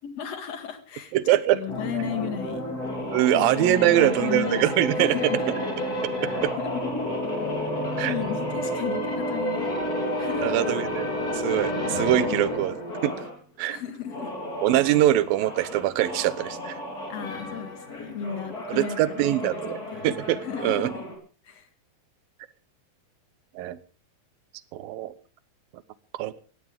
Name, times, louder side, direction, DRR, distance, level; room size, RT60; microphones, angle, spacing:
voice 1, 0.0-2.6 3.3-4.7 5.0-5.6 6.6-7.0 8.1-9.7 10.2-10.7 12.2-12.4 13.7-14.3 17.1-20.1 20.4-21.0 21.4-21.7, left 8 dB, 50° left, 8 dB, 2.7 m, -34 dB
voice 2, 1.1-1.6 3.1-5.5 6.2-6.5 8.0-8.1 10.4-11.1 11.3-13.2 13.6-13.8 14.6-16.8 18.7-20.9 23.6-23.8 24.7-25.1 25.7-25.8 26.1-26.4, right 13 dB, 80° right, 16 dB, 2.6 m, -23 dB
sound 1, 1.7-13.3 14.0-21.1, left 1 dB, 25° left, 4.3 m, -31 dB
17.0 x 16.5 x 3.6 m, 0.36 s
omnidirectional pair, 4.1 m